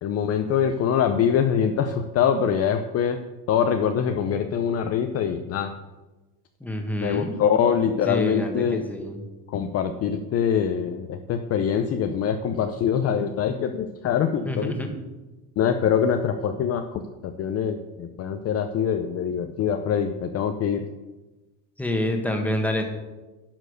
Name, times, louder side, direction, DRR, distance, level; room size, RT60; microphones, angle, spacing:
voice 1, 0.0-3.2 3.5-5.7 7.0-8.8 9.5-14.7 15.6-16.8 17.2-20.8, left 8 dB, 35° left, 7 dB, 0.6 m, -24 dB
voice 2, 6.6-7.3 8.0-9.2 14.4-14.9 21.8-22.8, left 1 dB, 5° left, 3 dB, 1.5 m, -27 dB
11.5 x 4.5 x 6.6 m, 1.2 s
supercardioid pair, 110°, 44 cm